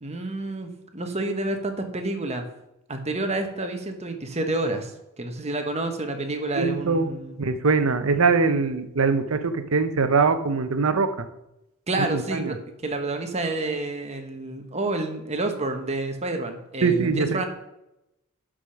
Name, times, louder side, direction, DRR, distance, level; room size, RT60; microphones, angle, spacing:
voice 1, 0.0-2.5 2.9-4.9 5.2-7.4 11.9-12.6 12.8-17.4, right 2 dB, 30° right, 5 dB, 1.2 m, -29 dB
voice 2, 6.6-7.1 7.4-11.3 12.1-12.5 16.8-17.4, right 4 dB, 65° right, 10 dB, 0.8 m, -22 dB
11.5 x 5.0 x 5.8 m, 0.89 s
head